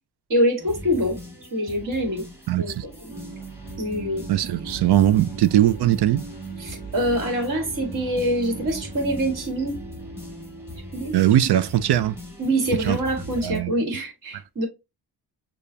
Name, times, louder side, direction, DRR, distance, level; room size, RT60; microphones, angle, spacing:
voice 1, 0.3-1.2 1.5-2.2 2.6-2.7 3.0-3.1 3.8-4.2 6.6-9.8 10.9-11.2 12.4-14.7, equal, 55° right, 1.9 m, -25 dB
sound 1, 0.6-13.6, equal, 5° right, 1.7 m, -40 dB
voice 2, 2.5-2.8 4.3-6.2 11.1-12.2 12.9-13.0 13.4-13.7, right 12 dB, 85° right, 0.6 m, -20 dB
sound 2, 3.1-11.9, right 4 dB, 25° right, 2.6 m, -40 dB
6.7 x 2.5 x 2.7 m
wide cardioid pair, 115°, 39 cm